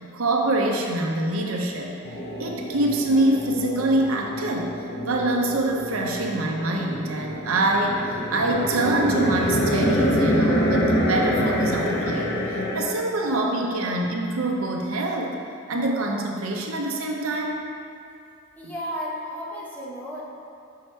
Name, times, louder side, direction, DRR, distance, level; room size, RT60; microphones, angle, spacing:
voice 1, 0.1-1.9 2.4-4.7 5.1-12.4 12.7-15.3 15.7-17.6 18.6-18.7, right 2 dB, 80° right, 0 dB, 0.7 m, -25 dB
sound 1, 2.0-12.8, equal, 55° left, 0.9 m, -26 dB
voice 2, 18.6-20.2, equal, 10° left, -6 dB, 1.0 m, -33 dB
5.6 x 4.8 x 4.4 m, 2.4 s
head